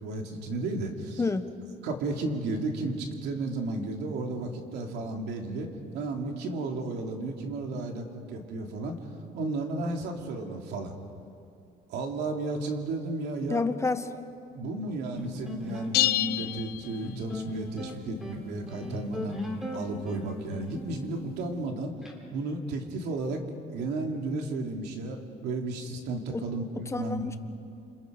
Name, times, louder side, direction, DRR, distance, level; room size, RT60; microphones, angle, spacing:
voice 1, 0.0-1.2 1.8-5.7 5.9-9.0 9.3-11.0 11.9-13.7 14.5-21.9 22.3-23.4 23.7-27.2, right 2 dB, 80° right, 2 dB, 3.0 m, -33 dB
voice 2, 1.2-1.5 13.5-14.1 26.3-26.5 26.7-27.4, left 3 dB, 15° left, 10 dB, 1.2 m, -29 dB
sound 1, 15.2-22.1, left 1 dB, ahead, 3.8 m, -38 dB
sound 2, 15.9-17.5, left 14 dB, 65° left, 0.5 m, -28 dB
29.5 x 27.0 x 5.3 m, 2.5 s
cardioid pair, 110°, 17 cm